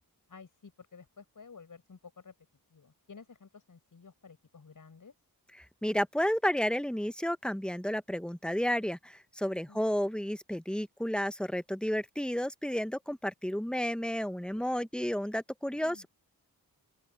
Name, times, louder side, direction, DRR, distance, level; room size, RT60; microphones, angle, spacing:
voice 1, 0.3-2.3 2.7-5.1 9.7-9.8 15.7-16.1, left 5 dB, 55° left, 6.2 m, -52 dB
voice 2, 5.6-16.1, equal, ahead, 1.3 m, -32 dB
open air
cardioid pair, 70°, 38 cm